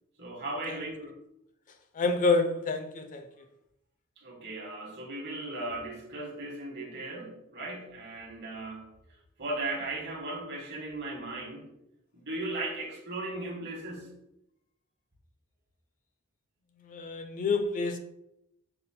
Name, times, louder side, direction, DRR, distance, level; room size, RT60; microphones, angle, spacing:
voice 1, 0.2-1.1 4.2-8.9 9.4-11.7 12.3-14.1, right 2 dB, 50° right, 1.2 m, -37 dB
voice 2, 1.9-3.3 16.8-18.0, left 3 dB, 35° left, 0.4 m, -28 dB
5.5 x 2.0 x 4.1 m
head